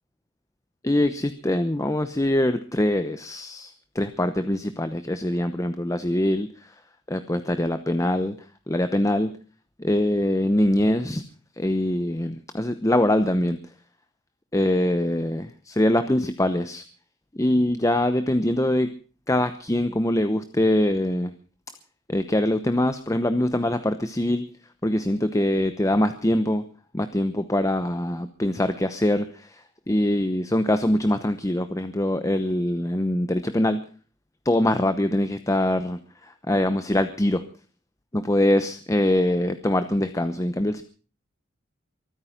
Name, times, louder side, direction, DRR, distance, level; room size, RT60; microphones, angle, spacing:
voice 1, 0.8-6.7 7.1-8.4 8.7-9.3 9.8-11.2 11.6-13.6 14.5-16.8 17.3-18.9 19.3-21.3 22.1-24.5 24.8-26.6 26.9-33.8 34.4-37.4 38.1-40.8, left 1 dB, 15° left, 10 dB, 0.9 m, -23 dB
23.5 x 9.6 x 5.9 m, 0.39 s
head